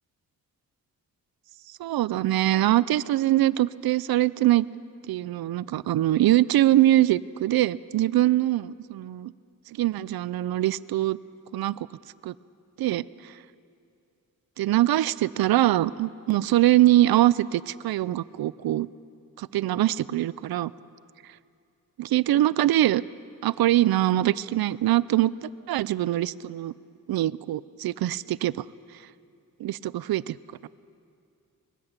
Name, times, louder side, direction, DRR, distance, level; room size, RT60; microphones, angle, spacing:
voice 1, 1.8-4.7 5.1-9.3 9.8-11.2 11.5-11.9 12.2-12.3 12.8-13.3 14.6-18.9 19.4-20.7 22.0-23.0 23.4-26.7 27.1-28.6 29.6-30.4 30.6-30.7, right 14 dB, 80° right, 19 dB, 0.5 m, -23 dB
21.5 x 16.5 x 8.0 m, 2.5 s
wide cardioid pair, 145°, 36 cm